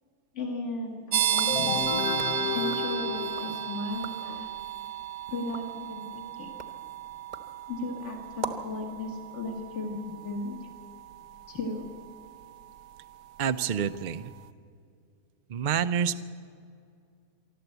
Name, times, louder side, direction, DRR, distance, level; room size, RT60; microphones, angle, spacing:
voice 1, 0.3-1.9 2.5-4.5 5.3-6.5 7.7-10.6 11.5-11.9, left 2 dB, 50° left, 0 dB, 2.4 m, -35 dB
sound 1, 1.1-13.6, right 10 dB, 90° right, 1.2 m, -34 dB
sound 2, 1.2-3.6 3.9-4.4 4.8-8.8, right 3 dB, 30° right, 1.1 m, -43 dB
sound 3, 1.5-4.1, left 6 dB, 70° left, 1.4 m, -32 dB
voice 2, 13.4-14.3 15.5-16.2, right 8 dB, 55° right, 12 dB, 0.5 m, -28 dB
24.5 x 13.5 x 8.1 m, 2.3 s
omnidirectional pair, 1.6 m